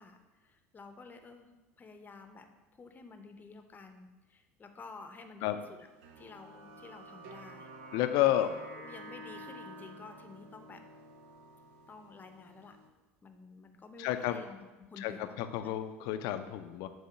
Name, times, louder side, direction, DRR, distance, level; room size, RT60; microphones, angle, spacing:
voice 1, 0.0-1.5 1.8-2.5 2.7-5.9 6.2-7.7 8.2-8.5 8.7-10.8 11.9-12.8 13.2-15.8, left 4 dB, 25° left, 7 dB, 0.7 m, -51 dB
sound 1, 6.0-12.9, right 1 dB, 65° right, 0.6 m, -50 dB
voice 2, 7.9-8.5 14.0-14.4 15.0-16.9, left 13 dB, 55° left, 9 dB, 0.5 m, -30 dB
7.4 x 2.8 x 5.7 m, 1.1 s
figure-of-eight pair, 70°, 7 cm